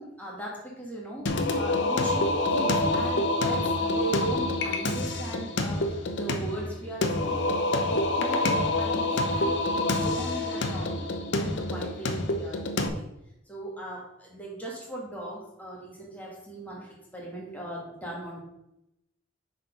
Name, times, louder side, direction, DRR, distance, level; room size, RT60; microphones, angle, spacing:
voice 1, 0.0-7.5 7.8-13.1 13.5-18.4, right 1 dB, 10° left, -3 dB, 2.0 m, -39 dB
Singing, 1.3-12.9, left 2 dB, 65° left, 0.8 m, -27 dB
7.1 x 4.3 x 5.3 m, 0.85 s
head